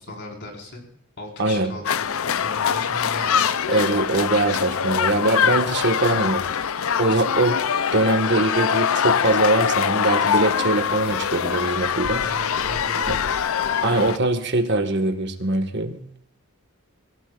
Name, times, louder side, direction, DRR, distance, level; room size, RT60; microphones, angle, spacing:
voice 1, 0.1-0.9 1.2-3.6 5.6-6.3 12.2-14.3, left 1 dB, 55° left, 0 dB, 4.9 m, -38 dB
voice 2, 1.4-1.8 3.7-6.4 7.0-7.6 7.9-12.3 13.1-13.2 13.8-16.0, right 2 dB, 55° right, 7 dB, 1.7 m, -22 dB
sound 1, 1.8-14.2, left 7 dB, 70° left, 0.5 m, -23 dB
26.5 x 16.5 x 2.5 m, 0.67 s
head